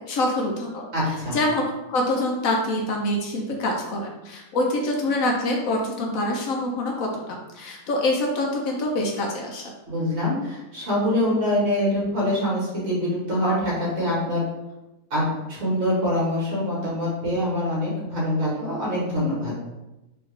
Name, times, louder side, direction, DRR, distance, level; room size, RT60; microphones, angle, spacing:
voice 1, 0.1-0.9 1.3-9.7, left 1 dB, 70° left, 0 dB, 1.0 m, -25 dB
voice 2, 0.9-1.4 9.9-14.4 15.1-19.5, left 1 dB, 55° right, -7 dB, 1.9 m, -24 dB
3.9 x 3.4 x 3.2 m, 0.99 s
omnidirectional pair, 1.6 m